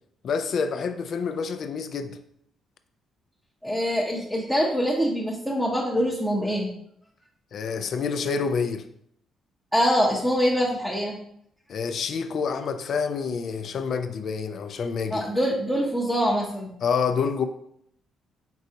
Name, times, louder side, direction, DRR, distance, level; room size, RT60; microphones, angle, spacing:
voice 1, 0.2-2.2 7.5-8.9 11.7-15.3 16.8-17.5, left 5 dB, 60° left, 0.4 m, -27 dB
voice 2, 3.6-6.7 9.7-11.2 15.1-16.7, equal, 5° left, 0.7 m, -24 dB
4.6 x 4.0 x 2.8 m
cardioid pair, 90°, 0 cm